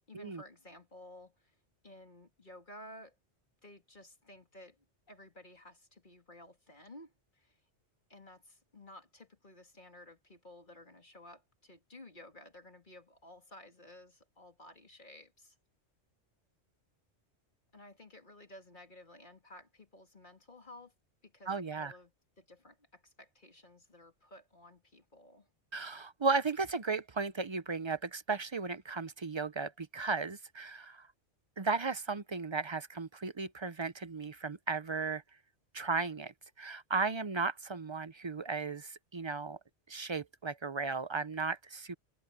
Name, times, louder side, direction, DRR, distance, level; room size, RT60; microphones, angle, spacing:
voice 1, 0.1-1.6 1.8-3.2 3.6-7.6 8.1-15.6 17.7-20.9 21.2-25.5, left 1 dB, 45° left, 2.7 m, -54 dB
voice 2, 21.5-21.9 25.7-31.1 31.6-35.2 35.7-39.6 39.9-42.0, right 4 dB, 35° right, 0.5 m, -35 dB
omnidirectional pair, 1.2 m